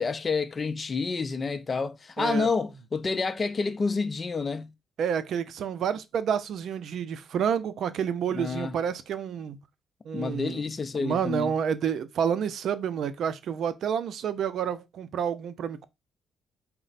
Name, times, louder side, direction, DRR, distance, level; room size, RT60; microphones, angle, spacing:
voice 1, 0.0-4.7 8.3-8.8 10.1-11.5, left 4 dB, 35° left, 0.4 m, -29 dB
voice 2, 2.2-2.5 5.0-9.6 10.1-10.6 11.0-15.9, right 8 dB, 70° right, 0.4 m, -29 dB
4.3 x 2.1 x 3.9 m
cardioid pair, 90°, 0 cm